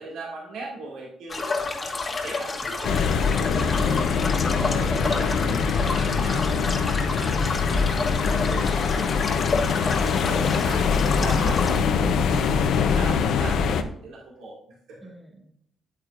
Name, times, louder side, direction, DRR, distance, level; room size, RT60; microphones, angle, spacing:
voice 1, 0.0-4.0 4.7-9.4 9.7-15.1, right 2 dB, 80° right, -3 dB, 2.3 m, -40 dB
sound 1, 1.3-11.8, left 3 dB, 35° left, 1.3 m, -30 dB
sound 2, 2.8-13.8, left 5 dB, 75° left, 0.7 m, -23 dB
voice 2, 3.5-3.9 4.4-5.3 15.0-15.5, equal, 5° right, 1 dB, 2.2 m, -39 dB
9.1 x 8.5 x 2.6 m, 0.72 s
cardioid pair, 90°, 0 cm